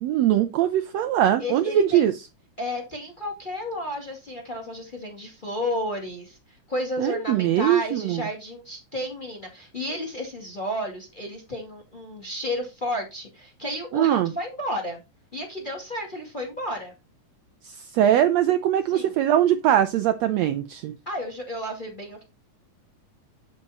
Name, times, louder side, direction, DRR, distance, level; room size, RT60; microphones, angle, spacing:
voice 1, 0.0-2.1 7.0-8.2 13.9-14.3 17.6-20.9, right 11 dB, 80° right, 1.5 m, -21 dB
voice 2, 1.4-2.1 2.6-15.0 15.3-16.9 18.9-19.2 21.1-22.2, left 1 dB, 20° left, 1.8 m, -32 dB
8.7 x 5.9 x 4.1 m
omnidirectional pair, 3.7 m